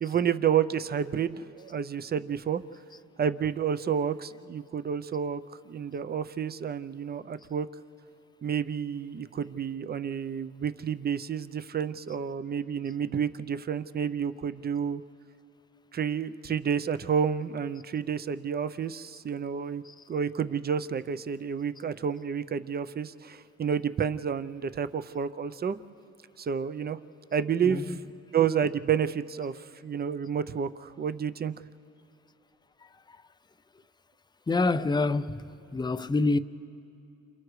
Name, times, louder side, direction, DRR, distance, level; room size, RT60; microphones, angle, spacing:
voice 1, 0.0-2.6 3.2-5.4 5.7-7.7 8.4-15.0 15.9-19.8 20.1-25.8 26.4-27.0 27.3-27.9 28.3-31.5, right 7 dB, 30° right, 0.6 m, -30 dB
voice 2, 27.6-28.0 33.1-33.2 34.5-36.4, left 3 dB, 15° left, 0.5 m, -27 dB
30.0 x 27.5 x 3.2 m
cardioid pair, 90°, 30 cm